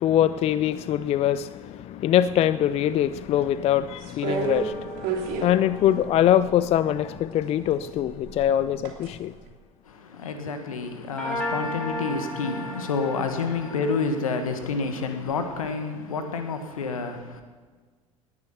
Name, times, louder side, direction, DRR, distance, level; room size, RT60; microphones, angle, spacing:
voice 1, 0.0-9.3, left 11 dB, 35° left, 0.4 m, -23 dB
sound 1, 4.0-6.7 7.7-9.1 9.5-9.6, right 7 dB, 50° right, 3.1 m, -31 dB
sound 2, 4.4-7.9 11.2-14.0, left 1 dB, 5° left, 5.4 m, -36 dB
voice 2, 9.8-17.4, left 4 dB, 75° left, 1.6 m, -29 dB
19.0 x 9.7 x 5.8 m
figure-of-eight pair, 70°, 18 cm